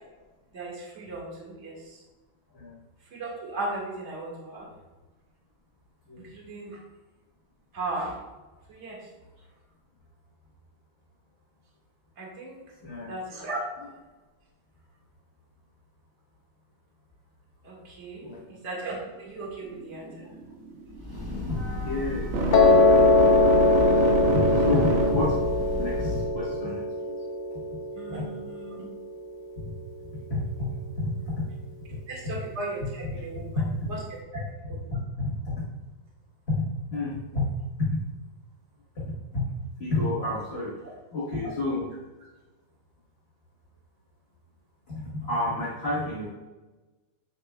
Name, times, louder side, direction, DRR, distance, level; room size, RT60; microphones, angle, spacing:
voice 1, 0.5-2.0 3.1-4.7 6.2-6.8 7.7-8.2 8.7-9.0 12.2-12.6 13.0-13.6 17.6-20.3 28.0-28.8 32.1-33.4 33.9-34.0 34.3-34.4 34.7-34.9, right 2 dB, 35° right, -4 dB, 1.9 m, -36 dB
sound 1, 19.6-25.5, right 3 dB, 75° right, 1.6 m, -29 dB
Breathing / Train, 20.8-26.4, left 2 dB, 15° right, 0.8 m, -33 dB
voice 2, 21.5-22.7 24.3-25.4 25.8-26.8 27.5-27.6 30.3-31.5 31.9-32.0 33.5-33.7 34.9-35.6 36.5-36.6 36.9-37.5 37.8-37.9 38.9-39.5 39.8-40.8 41.1-41.9 44.9-46.3, left 2 dB, 35° left, -7 dB, 1.3 m, -30 dB
Piano, 22.5-28.7, left 3 dB, 65° left, 0.7 m, -22 dB
8.2 x 6.7 x 2.2 m, 1.2 s
omnidirectional pair, 2.3 m